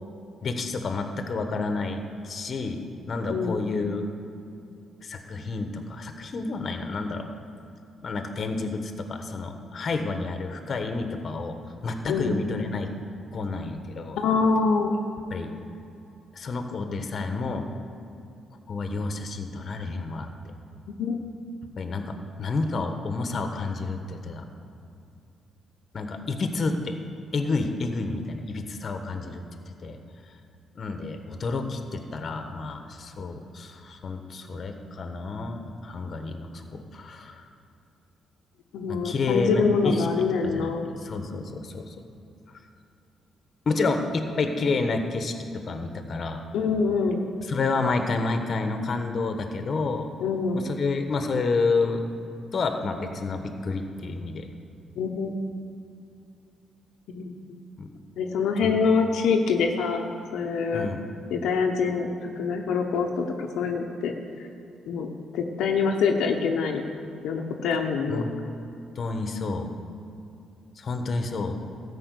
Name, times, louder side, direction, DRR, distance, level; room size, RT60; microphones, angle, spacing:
voice 1, 0.4-2.8 3.1-4.1 5.0-7.3 8.0-11.6 11.8-12.9 13.3-14.2 15.3-15.5 16.4-17.7 18.7-20.3 21.8-24.5 25.9-27.0 27.3-29.4 29.8-30.0 30.7-37.4 38.9-40.1 40.4-40.7 41.0-41.9 43.6-46.4 47.4-50.1 50.5-52.0 52.5-54.5 57.8-57.9 58.6-58.8 60.7-61.0 68.1-68.3 69.0-69.7 70.8-71.6, left 3 dB, 50° left, 6 dB, 1.2 m, -29 dB
voice 2, 14.2-15.0 21.0-21.2 38.7-40.9 46.5-47.2 50.2-50.6 55.0-55.4 57.1-57.3 58.2-60.0 60.3-60.9 61.3-64.1 64.9-65.1 65.3-66.8 67.2-68.2, left 5 dB, 85° left, 2 dB, 0.9 m, -25 dB
13.5 x 5.6 x 8.3 m, 2.7 s
cardioid pair, 90°, 0 cm